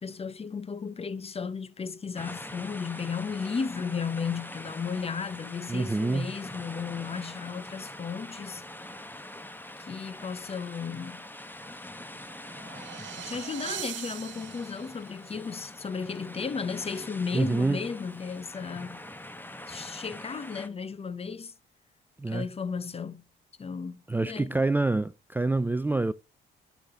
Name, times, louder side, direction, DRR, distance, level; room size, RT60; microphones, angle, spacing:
voice 1, 0.0-8.6 9.8-11.2 13.2-19.0 19.7-21.5 22.3-23.2 23.6-24.6, left 5 dB, 30° left, 0.8 m, -34 dB
sound 1, 2.2-20.7, left 1 dB, 10° left, 1.3 m, -44 dB
voice 2, 5.7-6.3 17.3-17.8 22.2-22.5 24.1-26.1, right 2 dB, 10° right, 0.4 m, -26 dB
sound 2, 12.1-15.1, right 13 dB, 70° right, 0.7 m, -41 dB
12.5 x 7.2 x 3.7 m
cardioid pair, 90°, 20 cm